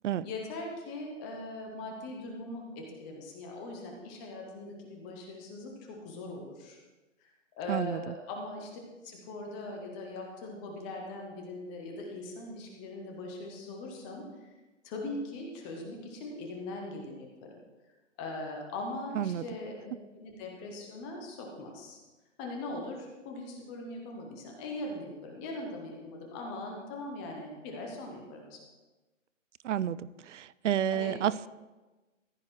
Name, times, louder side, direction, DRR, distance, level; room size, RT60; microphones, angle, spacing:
voice 1, 0.2-6.8 7.2-7.3 7.6-8.7 9.0-14.5 14.8-17.3 18.2-22.0 22.4-28.6 30.9-31.2, left 2 dB, 10° left, 1 dB, 0.4 m, -40 dB
voice 2, 7.7-8.1 19.2-19.4 29.6-31.5, right 10 dB, 70° right, 19 dB, 0.5 m, -30 dB
14.5 x 9.6 x 3.0 m, 1.2 s
hypercardioid pair, 140°, 38 cm